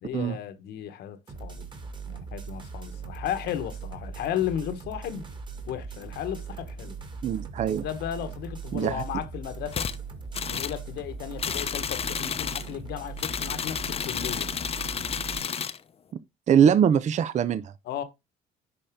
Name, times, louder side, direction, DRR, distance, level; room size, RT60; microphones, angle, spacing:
voice 1, 0.0-5.3 5.7-7.0 7.7-9.9 10.5-14.5 17.8-18.0, left 10 dB, 75° left, 1.3 m, -34 dB
sound 1, 1.3-15.4, right 5 dB, 25° right, 2.2 m, -40 dB
voice 2, 7.2-7.8 8.7-9.0 16.1-16.2 16.5-17.7, right 8 dB, 45° right, 0.6 m, -22 dB
sound 2, 9.7-10.0 10.3-10.8 11.4-12.7 13.2-15.8, left 7 dB, 35° left, 0.7 m, -31 dB
10.5 x 4.3 x 3.6 m
cardioid pair, 110°, 17 cm